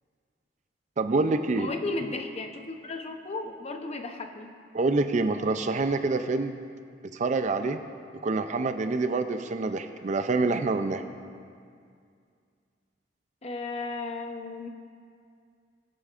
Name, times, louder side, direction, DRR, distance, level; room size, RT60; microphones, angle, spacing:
voice 1, 1.0-1.7 4.7-6.6 7.1-7.8 8.2-11.0, right 3 dB, 40° right, 9 dB, 0.4 m, -26 dB
voice 2, 1.5-4.5 13.4-14.7, left 3 dB, 35° left, 5 dB, 0.7 m, -35 dB
21.0 x 8.3 x 2.5 m, 2.3 s
head